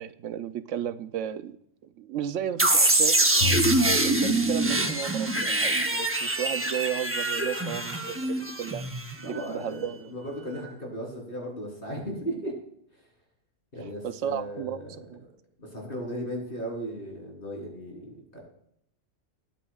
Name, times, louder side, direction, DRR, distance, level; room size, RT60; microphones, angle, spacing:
voice 1, 0.0-1.6 2.0-3.3 4.0-8.8 9.2-10.1 14.0-15.2, right 9 dB, 85° right, 12 dB, 1.0 m, -34 dB
sound 1, 2.6-9.4, right 2 dB, 15° right, 0.6 m, -24 dB
Drum, 3.4-5.8, left 4 dB, 90° left, 1.6 m, -34 dB
voice 2, 9.2-12.5 13.7-15.0 15.6-18.4, equal, 45° left, -1 dB, 3.9 m, -36 dB
19.0 x 9.1 x 2.4 m, 0.70 s
omnidirectional pair, 1.2 m